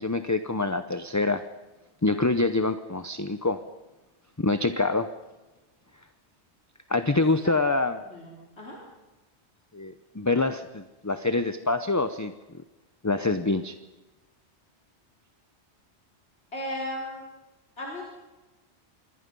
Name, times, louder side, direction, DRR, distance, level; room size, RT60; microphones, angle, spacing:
voice 1, 0.0-1.4 2.0-3.6 4.4-5.1 6.9-8.0 9.7-12.3 13.0-13.8, left 3 dB, 20° left, 10 dB, 0.7 m, -25 dB
voice 2, 8.0-8.8 16.5-17.2 17.8-18.0, left 1 dB, 70° left, -3 dB, 4.4 m, -35 dB
26.5 x 22.5 x 5.5 m, 1.1 s
omnidirectional pair, 1.2 m